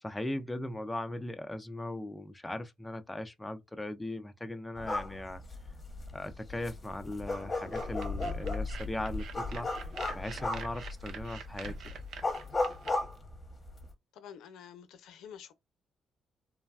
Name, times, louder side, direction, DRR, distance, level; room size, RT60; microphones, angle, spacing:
voice 1, 0.0-5.4 6.1-9.7 10.1-11.9, left 1 dB, 10° left, 0.5 m, -38 dB
sound 1, 4.8-13.9, left 2 dB, 25° left, 0.9 m, -36 dB
sound 2, 7.7-12.9, right 6 dB, 70° right, 0.5 m, -46 dB
voice 2, 14.1-15.5, left 8 dB, 85° left, 0.6 m, -49 dB
3.3 x 2.1 x 2.3 m
cardioid pair, 90°, 0 cm